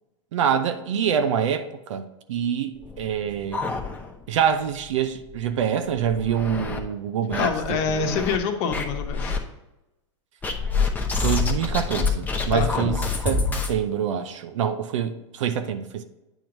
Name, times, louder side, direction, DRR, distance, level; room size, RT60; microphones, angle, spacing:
voice 1, 0.3-2.0 2.3-3.6 4.3-8.1 11.2-13.0 13.2-16.0, right 8 dB, 80° right, 0.6 m, -25 dB
sound 1, 2.8-4.4 4.7-4.8 5.2-5.3 5.9-6.8 7.3-8.4 8.7-9.4 10.4-13.7, left 4 dB, 10° left, 0.7 m, -27 dB
voice 2, 7.4-9.3 12.5-12.9, left 5 dB, 45° left, 1.0 m, -26 dB
9.0 x 3.1 x 5.2 m
hypercardioid pair, 130°, 16 cm